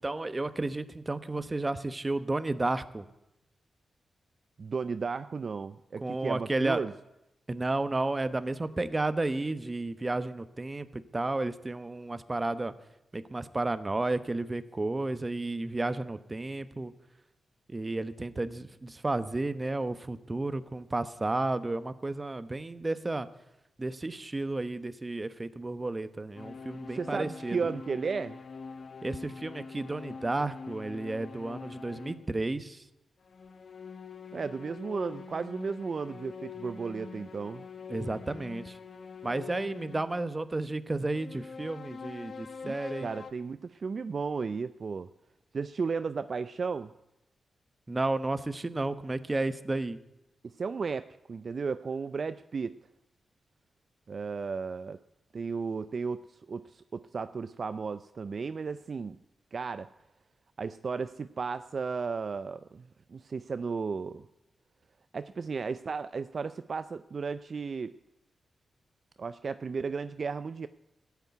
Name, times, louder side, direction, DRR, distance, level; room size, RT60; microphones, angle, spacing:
voice 1, 0.0-3.0 6.0-6.8 7.5-12.7 13.1-16.9 17.7-23.3 23.8-27.6 29.0-32.8 37.9-38.8 39.2-43.1 47.9-50.0, right 2 dB, 30° right, 12 dB, 1.0 m, -32 dB
voice 2, 4.6-6.9 26.9-28.4 34.3-37.7 42.6-42.8 43.0-45.1 45.5-46.9 50.4-52.7 54.1-55.0 55.3-59.2 59.5-59.9 60.6-62.8 63.1-64.3 65.1-67.9 69.2-70.7, right 5 dB, 55° right, 13 dB, 0.4 m, -34 dB
sound 1, 26.3-32.3 33.2-40.2 41.1-43.3, left 5 dB, 60° left, 1.0 m, -44 dB
14.5 x 8.3 x 9.5 m, 0.92 s
cardioid pair, 55°, 0 cm